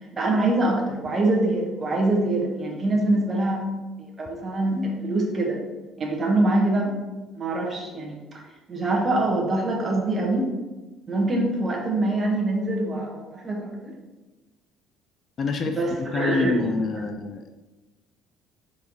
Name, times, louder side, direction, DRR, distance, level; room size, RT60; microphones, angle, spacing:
voice 1, 0.2-3.7 4.0-5.6 6.0-6.9 7.4-8.4 8.7-10.5 11.1-13.9 15.7-16.6, right 2 dB, 20° right, -1 dB, 1.3 m, -24 dB
voice 2, 15.4-17.5, left 4 dB, 35° left, 6 dB, 0.4 m, -27 dB
4.6 x 4.6 x 5.4 m, 1.2 s
cardioid pair, 160°, 0 cm